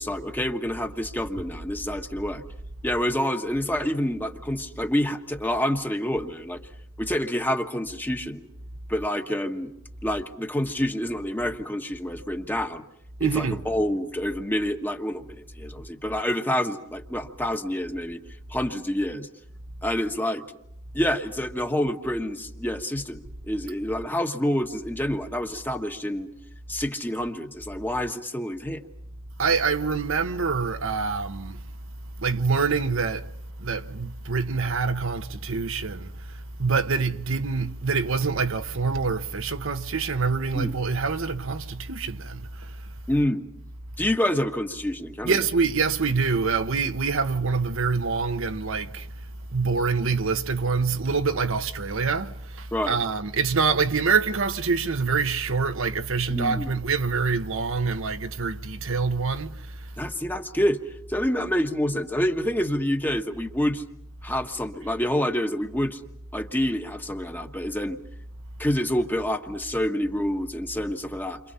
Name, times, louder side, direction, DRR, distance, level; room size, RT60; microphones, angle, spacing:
voice 1, 0.0-2.4 2.8-6.6 7.0-8.4 8.9-9.7 10.0-12.8 13.2-18.2 18.5-19.3 19.8-20.4 20.9-26.3 26.7-28.8 40.5-40.7 43.1-43.5 44.0-45.4 52.7-53.0 56.3-56.7 60.0-60.8 61.1-63.8 64.2-66.0 66.3-68.0 68.6-71.4, left 1 dB, 10° left, 1.3 m, -27 dB
voice 2, 13.2-13.6 29.4-31.6 32.2-33.3 33.6-42.9 45.2-49.1 49.5-59.9, right 4 dB, 65° right, 1.0 m, -26 dB
29.5 x 26.0 x 5.6 m
head